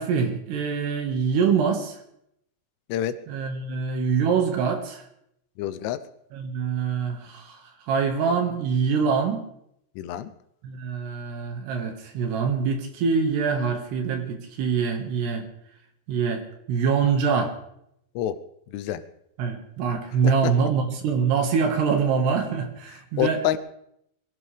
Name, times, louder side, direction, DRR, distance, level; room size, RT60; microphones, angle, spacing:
voice 1, 0.0-2.0 3.3-5.0 6.3-7.6 7.9-9.4 10.6-15.5 16.1-17.5 19.4-23.6, right 6 dB, 65° right, 4 dB, 3.4 m, -24 dB
voice 2, 5.6-6.0 10.0-10.3 18.2-18.4 18.7-19.0 20.2-20.3 23.2-23.6, left 12 dB, 85° left, 11 dB, 3.3 m, -26 dB
23.0 x 16.5 x 3.4 m, 0.75 s
omnidirectional pair, 5.6 m